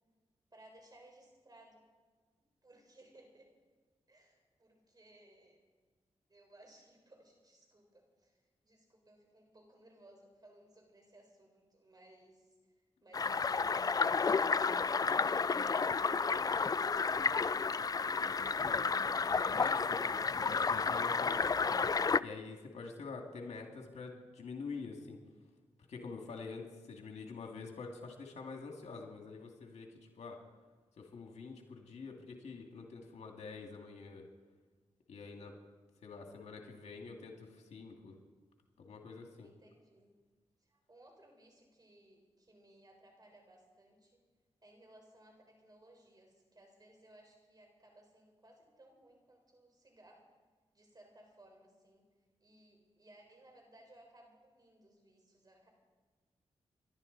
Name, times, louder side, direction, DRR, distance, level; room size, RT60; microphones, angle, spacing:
voice 1, 0.5-1.8 2.6-3.6 4.1-5.6 6.3-17.3 17.6-18.8 39.4-40.2 40.6-44.2 44.6-50.3 50.7-52.1 52.4-55.7, right 1 dB, 35° right, 2 dB, 4.4 m, -61 dB
sound 1, 13.1-22.2, left 5 dB, 35° left, 0.4 m, -31 dB
voice 2, 19.4-21.4 22.2-25.2 25.9-29.9 30.2-30.4 31.0-34.2 35.1-35.5 36.0-38.2 38.8-39.5, left 4 dB, 80° left, 2 dB, 2.1 m, -46 dB
26.5 x 12.0 x 4.0 m, 1.4 s
cardioid pair, 60°, 11 cm